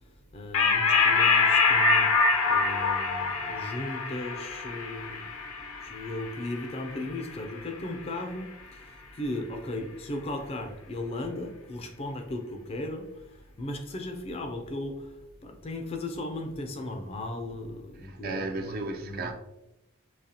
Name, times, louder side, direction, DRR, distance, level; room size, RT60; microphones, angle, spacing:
voice 1, 0.3-5.3 5.8-13.2 13.6-15.1 15.4-18.8 19.0-19.3, left 1 dB, 30° left, 0.4 m, -36 dB
sound 1, 0.5-7.4, left 4 dB, 75° left, 0.6 m, -25 dB
voice 2, 18.0-19.3, right 3 dB, 45° right, 0.4 m, -34 dB
4.0 x 2.8 x 2.7 m
head